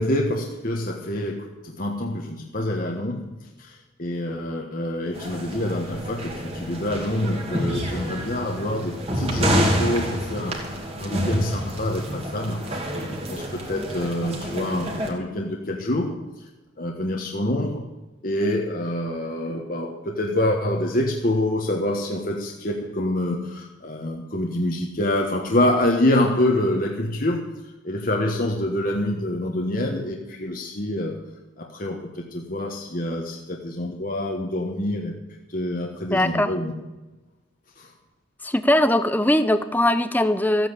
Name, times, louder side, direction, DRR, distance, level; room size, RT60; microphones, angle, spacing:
voice 1, 0.0-12.9 13.3-16.2 16.8-17.8 18.2-27.4 27.8-31.2 31.6-35.1 35.5-36.7 37.8-37.9, left 1 dB, 45° left, 1 dB, 1.4 m, -26 dB
sound 1, 5.1-15.1, equal, 30° right, 2.4 m, -28 dB
voice 2, 36.1-36.5 38.4-40.7, left 1 dB, 10° left, 11 dB, 0.7 m, -20 dB
14.5 x 9.1 x 8.3 m, 1.1 s
head